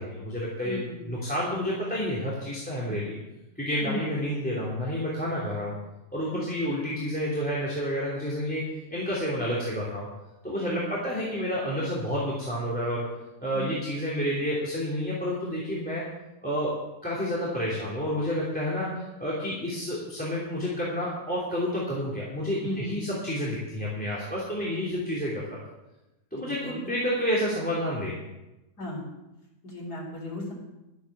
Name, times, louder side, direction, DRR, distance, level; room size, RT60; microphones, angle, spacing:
voice 1, 0.0-0.8 1.1-3.2 3.6-5.7 6.1-10.1 10.4-13.1 13.4-16.1 16.4-18.9 19.2-25.6 26.3-28.2, equal, 5° left, -6 dB, 3.0 m, -30 dB
voice 2, 0.6-1.5 2.9-3.0 3.8-4.0 6.3-6.5 10.6-10.9 13.5-13.7 18.8-19.0 22.6-23.2 24.6-25.0 26.4-27.0 28.8-29.1 29.6-30.5, left 1 dB, 75° left, -3 dB, 4.8 m, -37 dB
13.0 x 8.1 x 7.3 m, 0.98 s
omnidirectional pair, 1.7 m